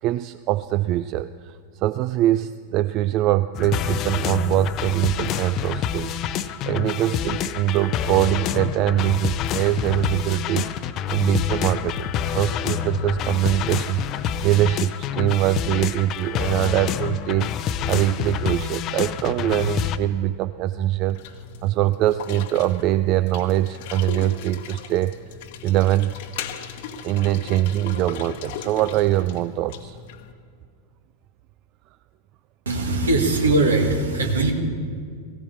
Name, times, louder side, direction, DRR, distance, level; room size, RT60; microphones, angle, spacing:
voice 1, 0.0-6.2 6.7-10.7 11.1-17.5 17.9-25.2 25.6-26.1 27.0-30.0, right 14 dB, 40° right, 15 dB, 0.3 m, -23 dB
sound 1, 3.5-20.0, left 9 dB, 35° left, 0.6 m, -27 dB
sound 2, 21.1-30.3, left 8 dB, 50° left, 1.0 m, -38 dB
voice 2, 32.7-34.5, right 2 dB, 70° right, 4 dB, 1.9 m, -20 dB
18.0 x 16.5 x 4.4 m, 2.1 s
figure-of-eight pair, 90°, 0 cm